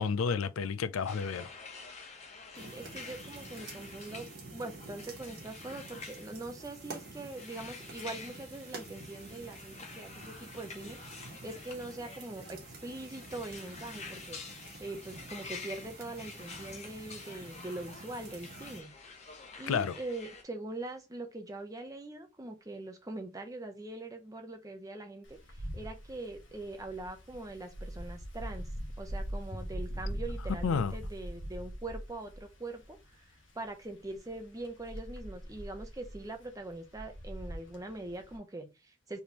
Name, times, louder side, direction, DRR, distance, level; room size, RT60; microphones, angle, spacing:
voice 1, 0.0-1.5 19.7-20.0 30.6-30.9, left 5 dB, 80° left, 0.4 m, -30 dB
sound 1, 1.0-20.4, left 4 dB, 30° left, 0.7 m, -49 dB
voice 2, 2.5-18.9 19.3-28.7 29.0-39.2, right 2 dB, 15° right, 0.7 m, -43 dB
sound 2, 2.5-18.8, right 3 dB, 50° right, 1.2 m, -49 dB
Wind, 25.2-38.4, equal, 65° left, 1.3 m, -42 dB
4.2 x 3.5 x 2.9 m
head